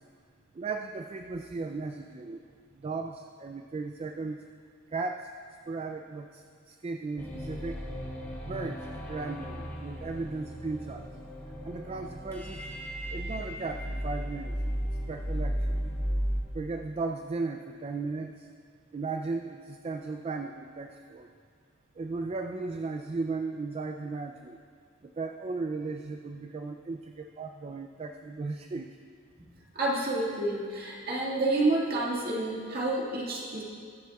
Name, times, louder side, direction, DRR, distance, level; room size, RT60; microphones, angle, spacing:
voice 1, 0.5-2.4 2.7-4.4 4.9-5.3 5.7-7.8 8.4-11.1 11.6-12.7 13.1-14.6 15.1-15.8 16.5-18.5 18.9-21.3 22.0-24.6 25.0-28.9, right 3 dB, 30° right, 5 dB, 0.3 m, -36 dB
sound 1, 7.2-16.4, equal, 15° left, 1.5 m, -35 dB
voice 2, 29.8-33.6, right 2 dB, 50° right, -4 dB, 1.9 m, -29 dB
20.5 x 7.6 x 2.3 m, 2.1 s
head